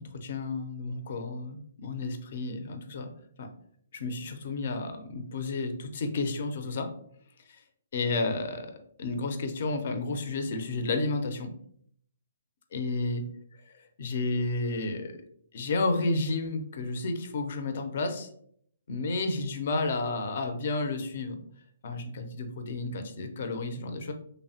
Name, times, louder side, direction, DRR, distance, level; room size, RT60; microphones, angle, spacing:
voice 1, 0.0-3.1 3.4-3.5 3.9-6.9 7.9-8.7 9.0-11.5 12.7-13.3 14.0-15.1 15.5-18.3 18.9-21.3 21.8-24.1, left 3 dB, 55° left, 6 dB, 0.4 m, -31 dB
3.1 x 2.0 x 2.7 m, 0.65 s
hypercardioid pair, 160°, 0 cm